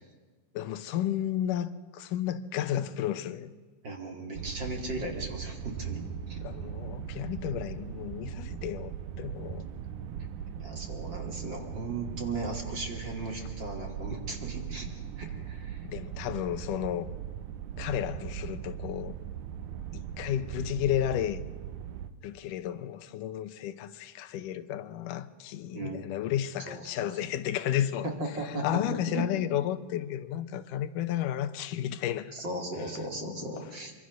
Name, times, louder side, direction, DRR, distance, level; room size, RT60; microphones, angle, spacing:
voice 1, 0.5-3.5 6.4-9.7 13.4-13.5 15.8-17.1 17.8-19.2 19.9-21.4 22.2-28.1 28.4-32.3 33.2-33.7, left 11 dB, 80° left, 2.5 m, -32 dB
voice 2, 3.8-6.0 6.3-6.4 10.6-14.9 15.2-15.8 25.7-26.1 26.7-27.1 28.0-28.7 29.1-29.3 32.3-33.9, right 2 dB, 35° right, 3.0 m, -37 dB
sound 1, 4.3-22.1, right 9 dB, 75° right, 2.3 m, -39 dB
25.5 x 24.0 x 6.4 m
omnidirectional pair, 3.7 m